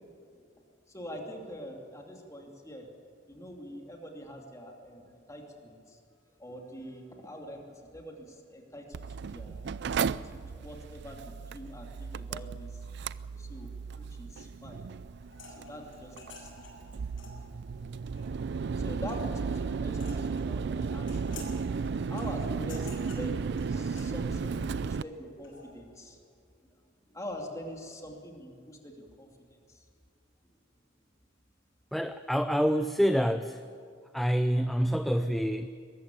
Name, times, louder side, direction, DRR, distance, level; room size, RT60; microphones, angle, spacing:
voice 1, 0.9-2.9 3.3-6.0 6.4-7.6 7.9-9.6 10.2-12.8 13.4-14.8 15.5-16.9 18.7-21.7 22.1-26.2 27.1-29.9, equal, 15° left, 1 dB, 2.7 m, -44 dB
Mechanical fan, 8.9-25.0, right 5 dB, 60° right, 0.4 m, -34 dB
sound 1, 15.2-25.7, left 2 dB, 90° left, 6.1 m, -51 dB
voice 2, 31.9-33.6 34.1-35.7, equal, ahead, 9 dB, 0.5 m, -27 dB
22.0 x 14.0 x 9.1 m, 2.2 s
head